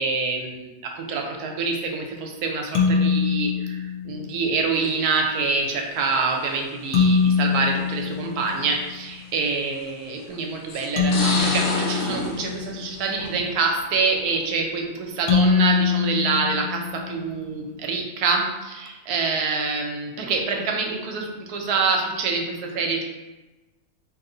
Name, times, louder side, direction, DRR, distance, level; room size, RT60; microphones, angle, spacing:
voice 1, 0.0-23.0, right 4 dB, 80° right, 2 dB, 1.1 m, -26 dB
sound 1, 2.7-4.4 6.9-9.0 11.0-13.1 15.3-17.3, left 5 dB, 70° left, 1.0 m, -23 dB
sound 2, 4.8-5.2 6.3-6.4 7.5-7.6 8.1-8.2 9.6-10.0 10.7-13.6 13.9-14.4, left 1 dB, 50° left, 0.7 m, -29 dB
3.0 x 2.9 x 3.7 m, 1.1 s
omnidirectional pair, 1.6 m